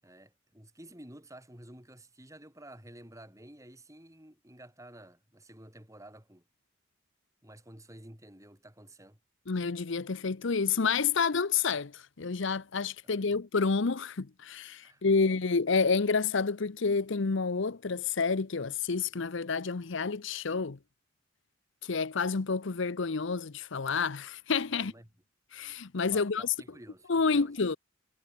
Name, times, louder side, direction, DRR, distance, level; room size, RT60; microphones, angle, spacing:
voice 1, 0.0-6.4 7.4-9.2 13.0-13.4 14.8-15.2 24.7-25.1 26.1-27.5, right 1 dB, 15° right, 7.4 m, -52 dB
voice 2, 9.5-20.8 21.8-24.9 25.5-26.5 27.1-27.8, left 5 dB, 60° left, 0.7 m, -29 dB
head